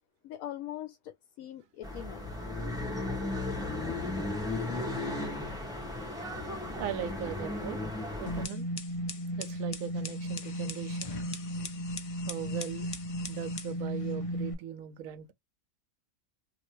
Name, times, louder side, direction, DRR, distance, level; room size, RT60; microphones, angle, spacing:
voice 1, 0.2-2.4, left 12 dB, 85° left, 1.0 m, -42 dB
sound 1, 1.8-8.5, left 2 dB, 5° right, 1.2 m, -35 dB
voice 2, 6.7-7.8 8.2-8.7 9.4-11.1 12.3-12.9 13.3-15.3, right 10 dB, 80° right, 1.1 m, -39 dB
sound 2, 8.3-14.5, equal, 65° left, 0.3 m, -35 dB
3.1 x 2.8 x 3.0 m
omnidirectional pair, 1.4 m